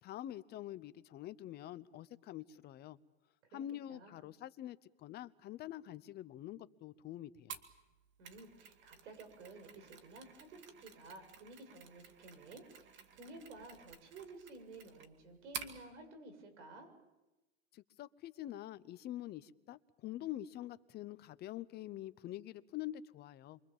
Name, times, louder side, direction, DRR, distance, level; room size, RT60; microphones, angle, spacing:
voice 1, 0.0-3.0 3.5-7.6 17.7-23.6, left 13 dB, 30° left, 16 dB, 0.8 m, -46 dB
voice 2, 3.5-4.2 8.2-16.9, right 2 dB, 75° right, 7 dB, 7.6 m, -53 dB
Mechanisms, 7.5-15.8, right 7 dB, 30° right, 2.4 m, -52 dB
28.0 x 24.5 x 7.4 m, 1.0 s
supercardioid pair, 130°, 35 cm